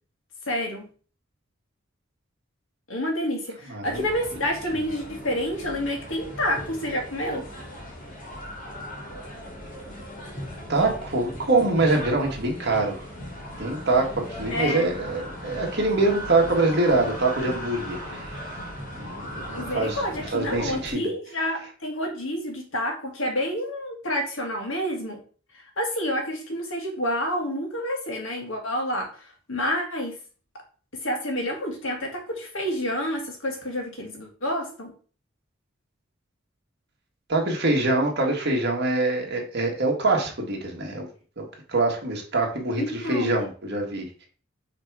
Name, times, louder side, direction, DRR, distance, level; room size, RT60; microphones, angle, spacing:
voice 1, 0.5-0.8 2.9-7.4 14.5-14.9 19.5-25.2 25.5-30.2 31.0-34.9 42.8-43.3, equal, 80° left, 2 dB, 1.9 m, -29 dB
voice 2, 3.7-4.0 10.7-13.0 13.6-18.3 18.9-20.0 20.3-21.0 37.3-41.1 41.4-44.1, right 2 dB, 55° right, 1 dB, 1.7 m, -24 dB
sound 1, 3.8-20.9, equal, 45° left, 1.9 m, -38 dB
5.8 x 3.5 x 4.7 m, 0.40 s
head